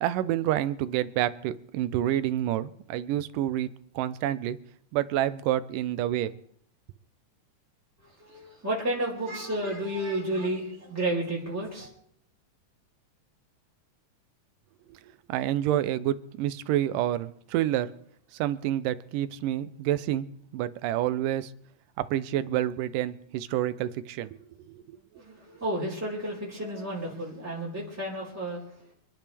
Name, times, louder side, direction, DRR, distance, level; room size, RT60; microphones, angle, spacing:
voice 1, 0.0-3.7 4.0-4.6 4.9-6.3 15.3-17.9 18.3-20.3 20.5-21.5 22.0-24.4 24.7-24.8, right 12 dB, 85° right, 2.3 m, -28 dB
voice 2, 8.0-11.9 25.1-28.6, right 1 dB, 5° right, 4.8 m, -31 dB
28.0 x 10.0 x 3.4 m
omnidirectional pair, 3.7 m